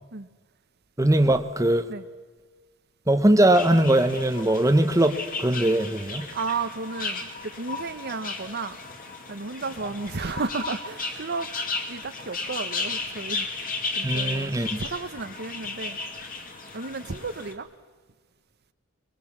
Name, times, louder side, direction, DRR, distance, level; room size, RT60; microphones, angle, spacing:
voice 1, 1.0-1.8 3.1-6.3 14.0-14.8, right 1 dB, 15° right, 1.0 m, -21 dB
sound 1, 3.5-17.5, left 4 dB, 45° left, 2.5 m, -35 dB
voice 2, 6.3-8.8 9.3-11.5 11.9-13.5 13.9-16.0 16.7-17.7, right 4 dB, 55° right, 1.0 m, -33 dB
22.5 x 22.0 x 7.3 m
head